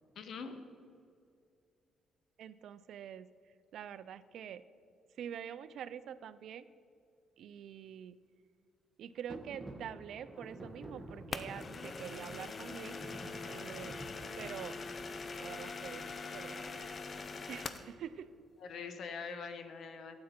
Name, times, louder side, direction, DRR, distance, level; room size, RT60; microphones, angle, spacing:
voice 1, 0.1-0.6 18.6-20.2, left 5 dB, 65° left, 8 dB, 1.0 m, -43 dB
voice 2, 2.4-3.3 3.7-4.6 5.2-6.7 7.4-8.2 9.0-13.1 13.5-14.0 14.4-14.8 15.4-18.3, right 9 dB, 70° right, 15 dB, 0.4 m, -46 dB
sound 1, 9.3-17.9, right 1 dB, 15° right, 1.5 m, -51 dB
sound 2, 11.3-17.9, left 4 dB, 40° left, 0.6 m, -43 dB
13.0 x 8.6 x 4.4 m, 2.4 s
cardioid pair, 90°, 0 cm